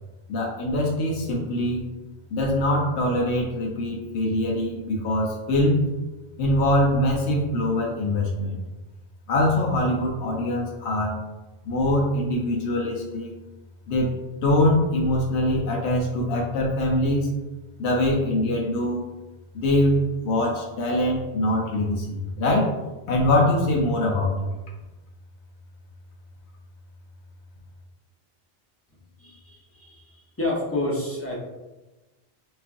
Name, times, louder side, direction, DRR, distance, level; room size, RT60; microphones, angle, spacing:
voice 1, 0.3-1.8 2.3-5.8 6.4-8.6 9.3-11.1 11.6-13.3 13.9-14.1 14.4-17.3 17.8-19.0 19.5-22.7 23.1-24.5, left 1 dB, 90° left, -2 dB, 0.9 m, -23 dB
voice 2, 29.2-31.4, left 1 dB, 15° left, -3 dB, 0.5 m, -29 dB
4.3 x 2.4 x 2.5 m, 1.1 s
omnidirectional pair, 1.1 m